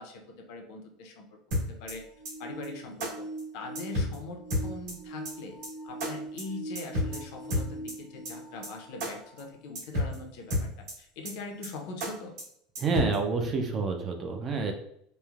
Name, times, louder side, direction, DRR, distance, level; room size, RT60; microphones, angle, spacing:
voice 1, 0.0-2.0 2.4-3.3 3.5-5.6 5.8-12.3, left 3 dB, 60° left, 2 dB, 0.5 m, -42 dB
sound 1, 1.5-1.9 2.2-2.3 2.6-2.7 3.0-3.1 3.4-3.5 3.7-4.2 4.5-4.9 5.2-5.3 5.6-5.7 6.0-6.1 6.4-6.5 6.7-7.2 7.5-7.9 8.2-8.3 8.6-8.7 9.0-9.1 9.4-9.5 9.7-10.2 10.5-10.9 11.2-11.3 11.6-11.7 12.0-12.1 12.4-12.5 12.7-13.2, left 1 dB, 65° right, 1.1 m, -30 dB
sound 2, 1.8-9.5 10.2-10.3 11.3-11.4, right 2 dB, 90° left, 0.9 m, -43 dB
voice 2, 12.8-14.7, right 4 dB, 25° right, 4 dB, 0.3 m, -28 dB
3.0 x 2.0 x 2.3 m, 0.70 s
cardioid pair, 165°, 0 cm